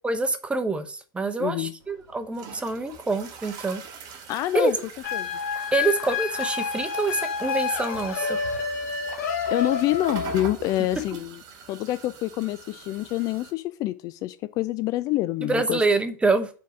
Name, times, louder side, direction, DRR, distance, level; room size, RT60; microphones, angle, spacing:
voice 1, 0.0-3.8 4.5-4.7 5.7-8.4 15.5-16.5, right 3 dB, 10° right, 9 dB, 0.8 m, -26 dB
voice 2, 1.4-1.8 4.3-4.8 5.1-5.3 8.3-8.6 9.5-11.4 11.7-15.8, left 15 dB, 35° left, 13 dB, 0.4 m, -27 dB
sound 1, 1.8-13.5, right 6 dB, 40° right, 1.2 m, -43 dB
sound 2, 5.0-10.5, left 6 dB, 60° left, 1.4 m, -29 dB
4.6 x 4.5 x 5.8 m, 0.39 s
figure-of-eight pair, 90°, 10 cm